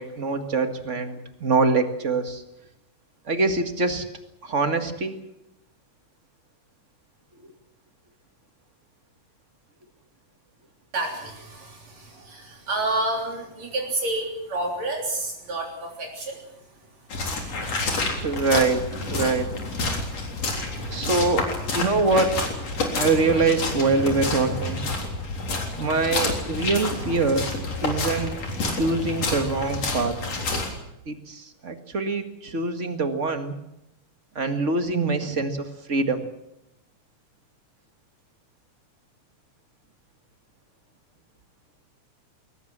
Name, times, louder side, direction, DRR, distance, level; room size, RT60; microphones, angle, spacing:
voice 1, 0.0-2.4 3.3-4.0 4.4-5.2 18.2-19.5 20.9-21.5 21.7-22.4 22.9-24.8 25.8-27.5 27.8-28.4 28.7-30.2 31.0-33.5 34.3-36.2, right 3 dB, 30° right, 7 dB, 1.6 m, -24 dB
voice 2, 10.9-16.4 19.9-21.0, right 2 dB, 60° right, 1 dB, 4.6 m, -30 dB
Footsteps Walking Boot Mud and Twigs, 17.1-30.7, left 3 dB, 55° left, 4.8 m, -29 dB
21.5 x 19.5 x 7.5 m, 0.84 s
omnidirectional pair, 3.4 m